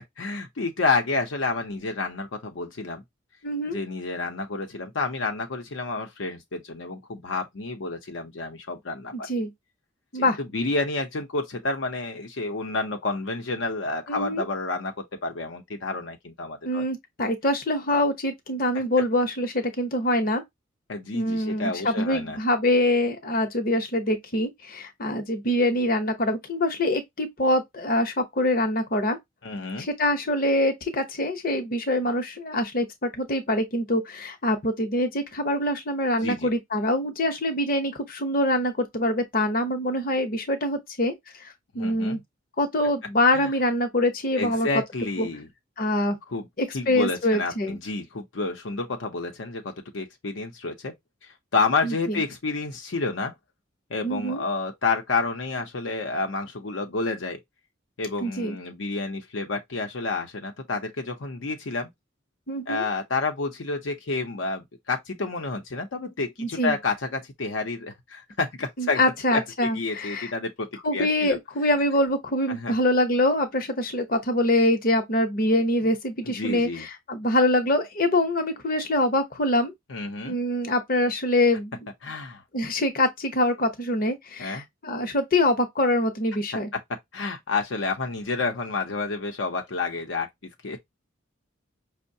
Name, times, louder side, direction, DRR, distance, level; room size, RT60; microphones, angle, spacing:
voice 1, 0.2-3.0 3.7-9.3 10.1-16.9 18.7-18.8 20.9-22.4 29.4-29.9 36.2-36.5 41.7-42.2 43.3-43.5 44.4-45.5 46.3-46.5 46.7-50.9 51.2-53.3 53.9-57.4 58.0-61.9 62.7-69.0 69.3-71.4 72.5-72.8 76.2-76.9 79.9-80.4 82.0-82.4 84.4-84.6 87.1-90.3 90.6-90.8, left 3 dB, 75° left, 0.7 m, -29 dB
voice 2, 3.4-3.8 9.1-9.5 10.1-10.4 14.1-14.5 16.6-20.4 21.1-29.2 29.8-41.1 41.4-42.2 42.6-44.7 45.2-45.3 45.8-46.2 46.6-47.8 51.8-52.2 54.0-54.4 58.2-58.6 62.5-62.9 66.4-66.8 68.8-70.3 70.8-79.7 80.2-81.7 82.5-86.7, left 1 dB, 45° left, 0.8 m, -24 dB
5.3 x 2.1 x 2.7 m
head